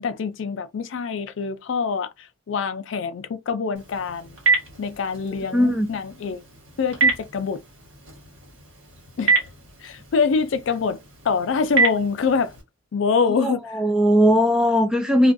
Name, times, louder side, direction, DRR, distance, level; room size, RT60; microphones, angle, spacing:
voice 1, 0.0-4.4 4.8-6.4 6.8-7.6 9.2-9.4 9.8-12.6 12.9-13.6, left 5 dB, 70° left, 0.4 m, -25 dB
Telephone, 3.7-12.6, right 4 dB, 80° right, 1.4 m, -27 dB
voice 2, 5.5-5.9 13.4-15.3, equal, 5° right, 0.3 m, -18 dB
2.4 x 2.2 x 2.5 m
head